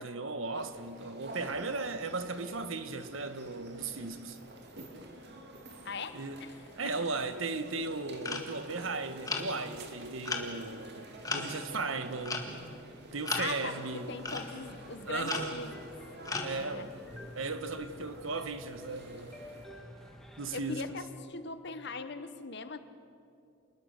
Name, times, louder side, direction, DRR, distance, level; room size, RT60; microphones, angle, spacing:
voice 1, 0.0-4.4 6.1-6.4 6.8-12.5 13.1-14.2 15.0-15.6 16.4-17.0 17.3-19.4 20.4-21.0, right 3 dB, 70° right, 1.4 m, -36 dB
sound 1, 0.6-19.7, right 1 dB, 55° right, 2.5 m, -50 dB
voice 2, 5.8-6.5 6.8-6.9 13.3-13.7 14.1-15.7 16.5-16.8 20.5-21.0 21.3-22.8, left 4 dB, 55° left, 1.2 m, -40 dB
sound 2, 8.2-8.5 9.3-9.7 10.3-10.5 11.2-11.8 12.3-12.7 13.2-13.7 14.2-14.5 15.2-15.7 16.3-16.6, left 3 dB, 15° left, 1.8 m, -36 dB
sound 3, 14.3-20.6, left 1 dB, ahead, 2.1 m, -51 dB
27.5 x 20.5 x 6.6 m
head